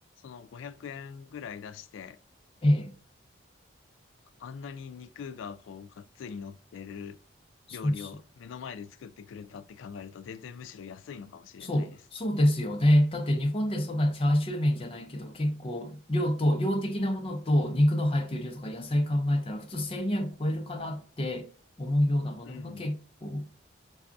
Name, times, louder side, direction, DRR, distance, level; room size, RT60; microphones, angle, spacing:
voice 1, 0.2-2.2 4.4-7.2 7.7-11.9 22.5-22.8, left 6 dB, 80° left, 0.3 m, -42 dB
voice 2, 2.6-2.9 7.7-8.1 11.6-21.5 21.8-23.5, left 1 dB, 30° left, 0.5 m, -27 dB
4.6 x 2.3 x 2.5 m
head